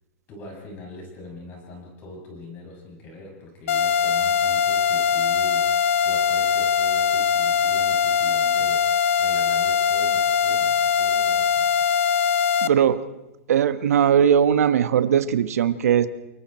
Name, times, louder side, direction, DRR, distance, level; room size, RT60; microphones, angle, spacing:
voice 1, 0.3-5.7 6.0-11.7, left 2 dB, 25° left, 0 dB, 6.9 m, -42 dB
sound 1, 3.7-12.7, left 7 dB, 60° left, 0.8 m, -21 dB
voice 2, 12.6-13.0 13.5-16.1, right 8 dB, 80° right, 11 dB, 1.3 m, -19 dB
29.5 x 24.5 x 4.4 m, 1.0 s
supercardioid pair, 170°, 8 cm